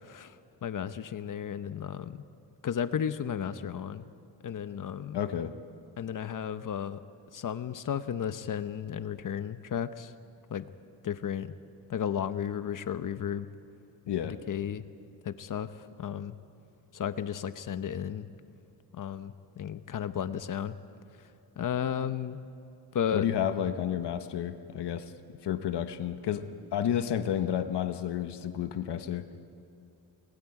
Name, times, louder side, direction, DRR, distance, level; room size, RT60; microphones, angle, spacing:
voice 1, 0.0-2.2 2.6-4.1 4.4-5.2 6.0-7.0 7.3-10.1 10.5-10.7 11.0-11.5 11.9-13.5 14.2-14.8 15.2-16.4 16.9-18.3 18.9-20.8 21.6-22.4 22.9-23.2, left 8 dB, 50° left, 11 dB, 0.9 m, -34 dB
voice 2, 5.1-5.5 14.1-14.4 23.1-25.0 25.4-26.4 26.7-29.2, left 10 dB, 90° left, 9 dB, 1.1 m, -31 dB
29.5 x 20.5 x 4.9 m, 2.7 s
wide cardioid pair, 145°, 40 cm